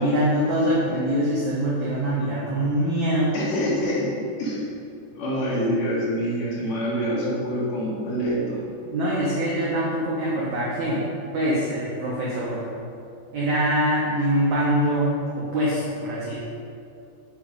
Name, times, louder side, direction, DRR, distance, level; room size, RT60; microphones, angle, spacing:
voice 1, 0.0-3.4 8.9-11.1 11.3-12.7 13.3-16.4, right 1 dB, 85° right, -6 dB, 1.6 m, -24 dB
voice 2, 3.3-4.1 4.4-4.6 5.1-8.6, equal, 60° left, -6 dB, 2.8 m, -26 dB
7.1 x 5.9 x 5.2 m, 2.6 s
omnidirectional pair, 4.9 m